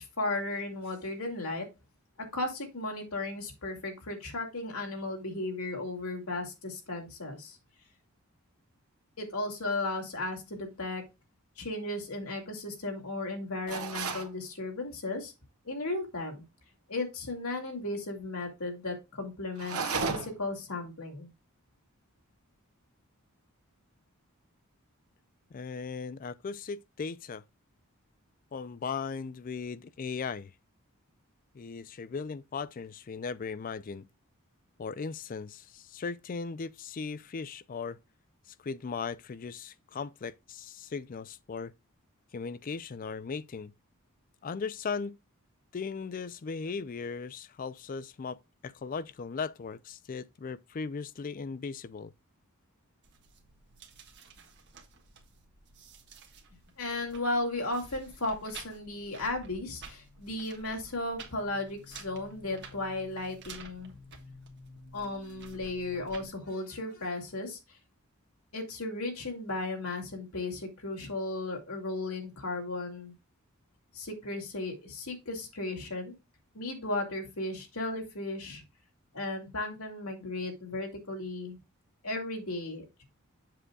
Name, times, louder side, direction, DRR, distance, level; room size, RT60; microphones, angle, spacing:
voice 1, 0.0-1.7 2.3-7.6 9.2-11.0 11.6-15.3 15.6-16.4 16.9-21.3 56.8-63.9 64.9-67.6 68.5-73.1 73.9-76.1 76.5-78.6 79.1-81.6 82.0-83.0, left 2 dB, 80° left, 2.5 m, -35 dB
sound 1, 13.7-14.3 19.6-20.5, right 4 dB, 85° right, 1.2 m, -33 dB
voice 2, 25.5-27.4 28.5-30.5 31.5-34.1 34.8-38.0 38.6-41.7 42.3-43.7 44.4-45.2 45.7-52.1, left 5 dB, 40° left, 0.4 m, -37 dB
sound 2, 53.0-66.3, right 3 dB, 55° right, 1.4 m, -51 dB
7.5 x 6.5 x 2.3 m
head